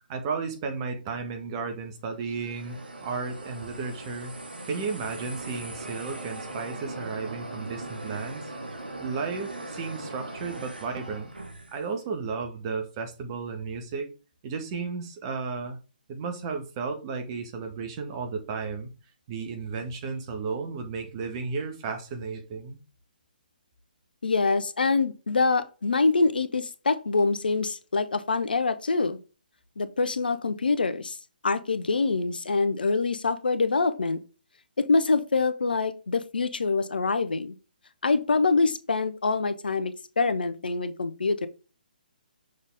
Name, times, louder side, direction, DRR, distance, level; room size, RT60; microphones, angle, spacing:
voice 1, 0.1-4.4 4.6-8.5 9.0-11.3 11.7-14.1 14.4-15.8 16.1-18.9 19.3-22.8, right 5 dB, 30° right, 1.5 m, -33 dB
sound 1, 2.1-11.9, right 2 dB, 80° right, 1.6 m, -40 dB
voice 2, 24.2-29.2 29.8-31.2 31.4-34.2 34.8-37.5 38.0-41.5, left 4 dB, 75° left, 0.9 m, -25 dB
6.6 x 4.1 x 3.5 m
figure-of-eight pair, 140°, 5 cm